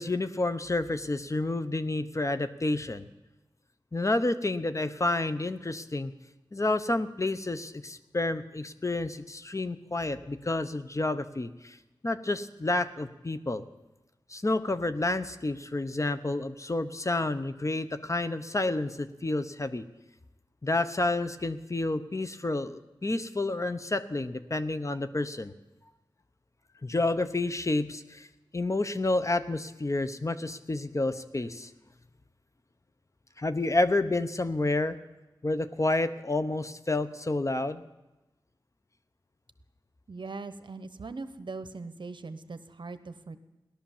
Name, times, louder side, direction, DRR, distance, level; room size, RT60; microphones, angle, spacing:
voice 1, 0.0-3.0 3.9-6.1 6.5-11.8 12.0-13.6 14.3-19.9 20.6-25.5 26.8-28.3 28.5-31.7 33.4-35.0 35.4-37.8, left 2 dB, 35° left, 11 dB, 0.8 m, -29 dB
voice 2, 40.1-43.4, right 3 dB, 65° right, 11 dB, 0.9 m, -40 dB
17.0 x 11.5 x 7.3 m, 1.0 s
wide cardioid pair, 65°, 9 cm